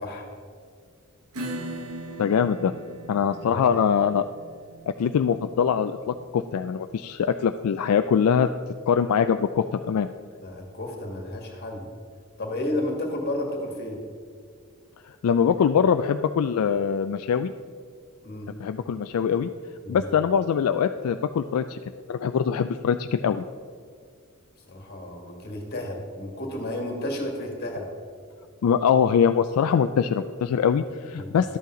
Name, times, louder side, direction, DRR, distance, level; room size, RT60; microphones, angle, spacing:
Acoustic guitar / Strum, 1.3-8.5, right 1 dB, 80° right, 1.3 m, -40 dB
voice 1, 2.2-2.7 3.1-4.3 5.0-8.5 8.9-10.1 15.0-17.5 18.6-19.5 19.9-21.8 22.1-23.4 28.6-31.6, left 7 dB, 75° left, 9 dB, 0.3 m, -23 dB
voice 2, 3.2-3.7 10.4-11.9 12.4-14.0 18.2-18.5 19.8-20.1 24.7-27.9 31.2-31.4, left 1 dB, 45° left, 1 dB, 1.8 m, -32 dB
12.0 x 8.2 x 3.8 m, 2.1 s
head